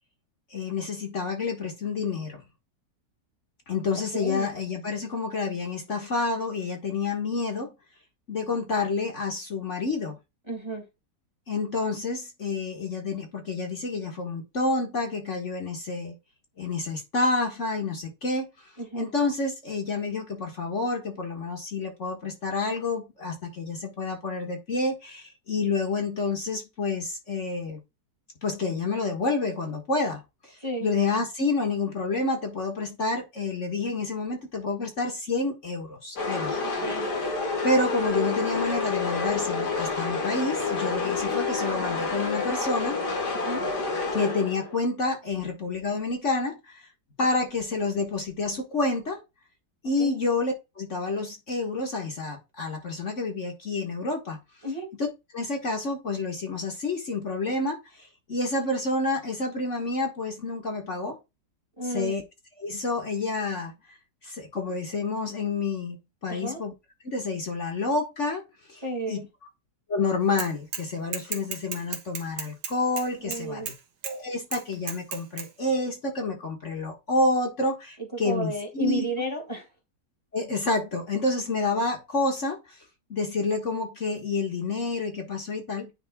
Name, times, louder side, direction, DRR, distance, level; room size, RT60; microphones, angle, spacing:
voice 1, 0.5-2.4 3.7-7.7 8.3-10.2 11.5-16.1 16.6-18.5 18.9-27.8 28.4-36.6 37.0-37.2 37.6-43.0 44.1-46.9 47.2-49.2 49.8-54.4 55.0-55.1 55.3-58.0 58.3-61.2 61.9-62.2 62.6-63.7 64.2-66.0 66.2-66.7 67.0-68.4 68.7-69.3 69.9-73.7 74.0-79.1 80.3-82.6 83.1-85.9, left 3 dB, 45° left, 1.8 m, -29 dB
voice 2, 4.1-4.5 10.5-10.8 18.8-19.1 30.6-30.9 36.8-37.1 43.3-43.7 50.0-50.2 54.6-54.9 61.8-62.1 66.3-66.6 68.8-69.3 73.2-73.7 78.1-79.7, right 1 dB, 15° right, 1.8 m, -32 dB
sound 1, 36.2-44.8, left 3 dB, 70° left, 2.6 m, -28 dB
Bicycle / Mechanisms, 70.4-70.9 71.1-73.8 74.0-74.1 74.5-75.5, right 7 dB, 85° right, 1.8 m, -34 dB
9.9 x 3.6 x 3.6 m
omnidirectional pair, 1.8 m